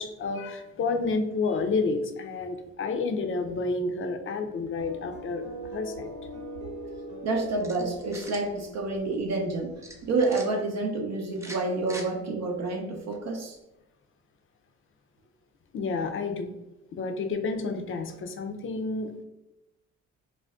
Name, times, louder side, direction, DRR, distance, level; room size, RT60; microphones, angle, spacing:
voice 1, 0.0-5.4 5.7-6.1 15.7-16.5 16.9-19.2, left 3 dB, 45° left, 6 dB, 0.5 m, -30 dB
sound 1, 4.8-10.1, equal, 80° right, 0.9 m, -41 dB
voice 2, 7.2-9.7 10.0-13.6, right 3 dB, 60° right, 1 dB, 0.6 m, -28 dB
sound 2, 7.6-8.5 9.8-10.5 11.3-12.1, right 1 dB, 10° right, 0.5 m, -43 dB
2.5 x 2.1 x 3.4 m, 0.95 s
cardioid pair, 90°, 30 cm